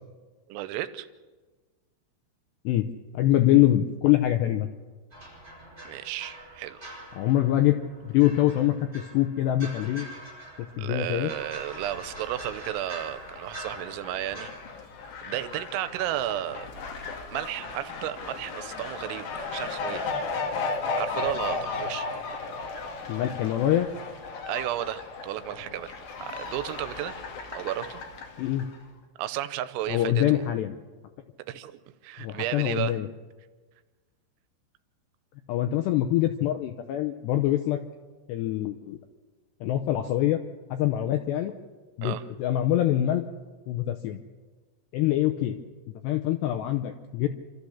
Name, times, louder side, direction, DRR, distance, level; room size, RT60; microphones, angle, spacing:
voice 1, 0.5-1.1 5.9-6.9 10.8-14.5 15.2-16.7 17.3-20.1 21.0-22.1 24.5-25.9 26.2-27.1 27.5-28.0 29.2-30.5 31.5-33.0 42.0-42.2, right 13 dB, 85° right, 12 dB, 3.5 m, -33 dB
voice 2, 3.1-4.7 7.2-10.1 10.6-11.3 23.1-23.9 28.4-28.6 29.9-30.7 32.2-33.1 35.5-37.8 38.3-39.0 39.6-40.4 40.7-41.5 42.0-43.2 43.7-44.2 44.9-45.6 46.0-47.3, left 13 dB, 90° left, 7 dB, 2.5 m, -24 dB
sound 1, 5.1-14.5, right 1 dB, 10° right, 6.6 m, -44 dB
Fowl, 11.4-28.8, left 4 dB, 55° left, 3.3 m, -36 dB
28.5 x 13.5 x 7.1 m, 1.4 s
omnidirectional pair, 5.9 m